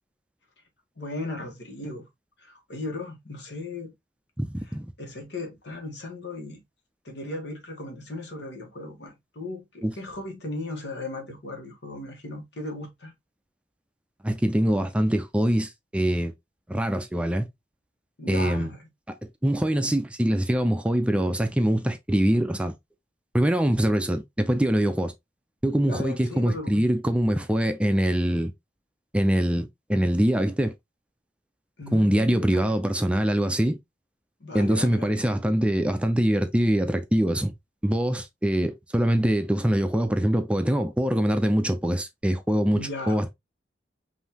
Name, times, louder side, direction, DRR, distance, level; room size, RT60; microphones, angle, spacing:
voice 1, 1.0-2.1 2.4-3.9 4.7-6.6 7.0-13.1 18.2-18.9 25.8-26.9 31.8-32.8 34.4-35.1 42.7-43.2, left 2 dB, 75° left, 1.4 m, -37 dB
voice 2, 4.4-4.9 9.8-9.9 14.2-16.3 16.7-17.5 18.3-18.7 19.4-22.7 23.3-25.1 25.6-28.5 29.1-30.7 31.9-33.8 34.5-37.5 37.8-43.3, right 1 dB, 5° right, 0.4 m, -23 dB
5.3 x 2.7 x 2.8 m
head